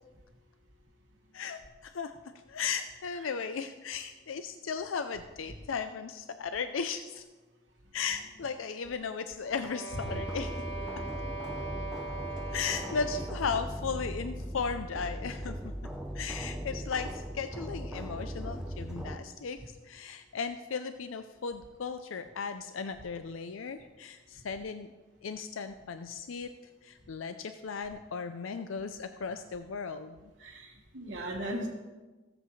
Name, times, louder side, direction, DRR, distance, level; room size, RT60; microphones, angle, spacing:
voice 1, 1.3-2.1 2.5-7.2 7.9-10.5 12.5-15.6 16.1-19.6 19.8-24.9 25.2-26.5 26.8-30.3, left 5 dB, 90° left, 9 dB, 0.5 m, -36 dB
sound 1, 9.4-13.6, right 3 dB, 65° left, 1.8 m, -41 dB
sound 2, 10.0-19.2, equal, 5° right, 0.7 m, -39 dB
voice 2, 30.4-31.7, right 1 dB, 60° right, -5 dB, 1.6 m, -37 dB
18.0 x 7.9 x 3.2 m, 1.2 s
head